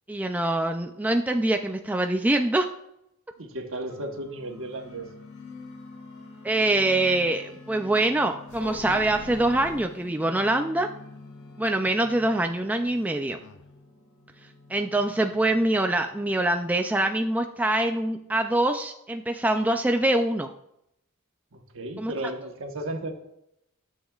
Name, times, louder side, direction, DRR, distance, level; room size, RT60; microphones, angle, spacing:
voice 1, 0.1-2.7 6.4-10.9 11.6-13.4 14.7-20.5 22.0-22.1, right 1 dB, 5° right, 5 dB, 0.3 m, -24 dB
voice 2, 3.4-5.1 21.5-23.1, right 1 dB, 65° right, 3 dB, 1.2 m, -34 dB
sound 1, 3.9-16.8, left 3 dB, 85° left, 1.9 m, -47 dB
sound 2, 8.5-9.9 11.7-12.6 12.9-13.0 13.4-13.6, left 4 dB, 55° left, 0.5 m, -42 dB
13.5 x 7.3 x 2.4 m, 0.80 s
head